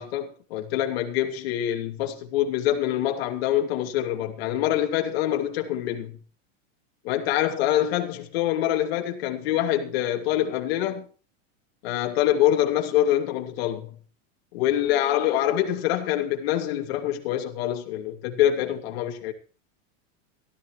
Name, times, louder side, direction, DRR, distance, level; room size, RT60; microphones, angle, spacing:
voice 1, 0.0-6.2 7.0-11.1 11.8-14.0 14.5-19.3, left 12 dB, 50° left, 2.6 m, -25 dB
17.0 x 14.0 x 3.2 m
supercardioid pair, 180°, 39 cm